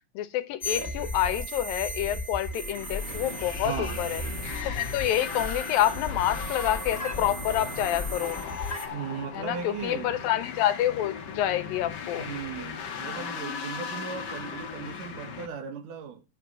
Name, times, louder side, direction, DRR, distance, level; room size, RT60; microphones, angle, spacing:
voice 1, 0.1-4.2 4.6-8.4 9.3-12.3, left 12 dB, 80° left, 2.8 m, -28 dB
sound 1, 0.6-8.9, left 1 dB, 25° left, 2.3 m, -35 dB
sound 2, 2.6-15.5, left 6 dB, 60° left, 1.1 m, -38 dB
voice 2, 3.6-4.0 8.9-10.2 12.2-16.2, right 7 dB, 70° right, 2.9 m, -37 dB
9.9 x 8.0 x 6.1 m
omnidirectional pair, 4.0 m